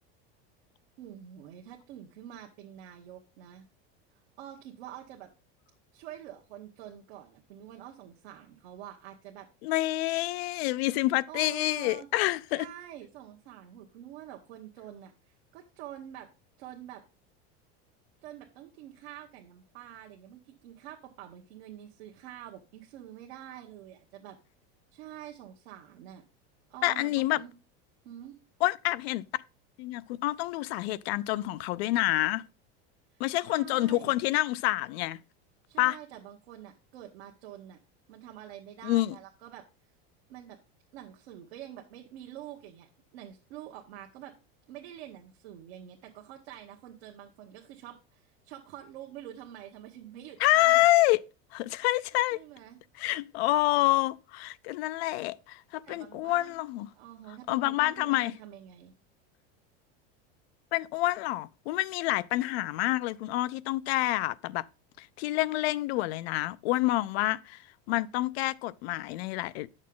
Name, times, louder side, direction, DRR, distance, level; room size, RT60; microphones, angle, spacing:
voice 1, 1.0-3.7 4.4-5.3 5.9-9.5 11.3-12.1 12.5-15.1 15.5-16.3 16.6-17.0 18.2-24.4 24.9-26.2 26.7-27.5 28.0-28.4 33.1-34.2 35.7-37.8 38.1-39.7 40.3-40.6 40.9-44.3 44.7-50.8 52.3-52.8 55.8-56.5 56.9-58.9, right 11 dB, 80° right, 1.2 m, -47 dB
voice 2, 9.6-12.7 26.8-27.4 28.6-29.2 29.8-32.5 33.2-35.2 35.8-36.0 38.8-39.2 50.4-51.2 51.5-52.4 53.0-56.9 57.5-58.3 60.7-64.6 65.0-67.6 67.9-69.7, left 17 dB, 75° left, 0.5 m, -27 dB
8.4 x 6.4 x 3.7 m
supercardioid pair, 150°, 31 cm